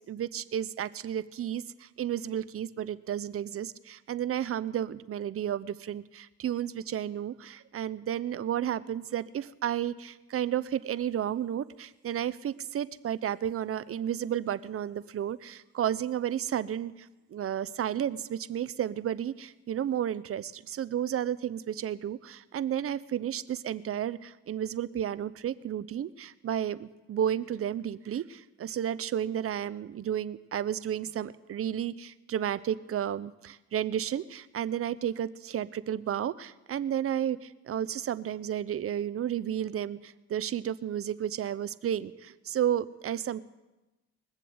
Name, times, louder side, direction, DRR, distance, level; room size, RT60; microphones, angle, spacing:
voice 1, 0.1-43.4, right 10 dB, 50° right, 17 dB, 0.6 m, -32 dB
20.5 x 7.4 x 7.9 m, 1.1 s
cardioid pair, 90°, 30 cm